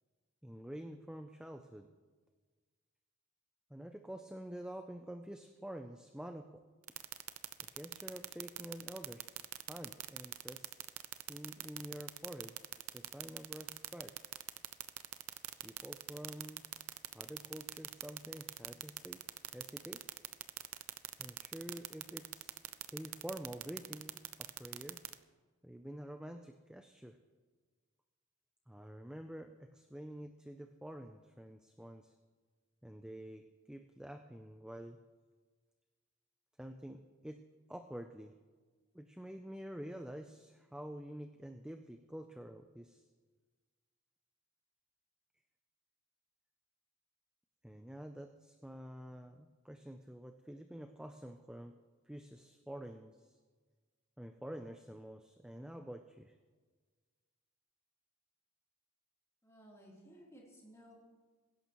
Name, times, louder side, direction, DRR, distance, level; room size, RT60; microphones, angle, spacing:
voice 1, 0.4-1.9 3.7-6.6 7.7-14.2 15.6-16.7 17.1-19.2 19.5-20.0 21.2-22.6 22.9-25.0 25.6-27.2 28.7-32.1 32.8-35.0 36.6-37.4 37.7-38.3 38.9-43.0 47.6-51.8 52.1-53.4 54.2-56.4, right 1 dB, 5° right, 6 dB, 0.4 m, -48 dB
sound 1, 6.9-25.1, right 14 dB, 85° right, 0.6 m, -41 dB
voice 2, 59.4-60.9, equal, 15° left, -4 dB, 3.2 m, -57 dB
22.5 x 11.0 x 3.0 m, 1.4 s
head